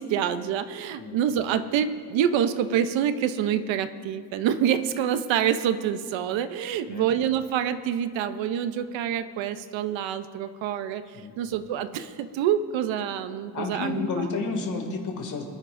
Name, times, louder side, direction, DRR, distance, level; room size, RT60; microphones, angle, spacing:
voice 1, 0.0-11.0 11.4-14.0, right 9 dB, 80° right, 11 dB, 0.8 m, -26 dB
voice 2, 13.5-15.4, left 4 dB, 40° left, 2 dB, 2.3 m, -30 dB
26.0 x 10.5 x 2.6 m, 2.1 s
cardioid pair, 145°, 45 cm